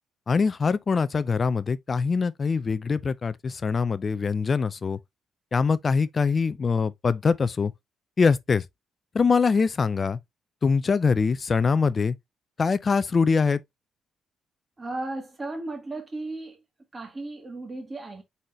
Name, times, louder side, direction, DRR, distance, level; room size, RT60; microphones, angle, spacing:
voice 1, 0.3-5.0 5.5-7.7 8.2-8.7 9.1-10.2 10.6-12.2 12.6-13.6, left 5 dB, 35° left, 0.4 m, -23 dB
voice 2, 14.8-16.6 16.9-18.2, right 2 dB, 25° right, 1.8 m, -35 dB
4.1 x 3.8 x 3.0 m
cardioid pair, 90°, 0 cm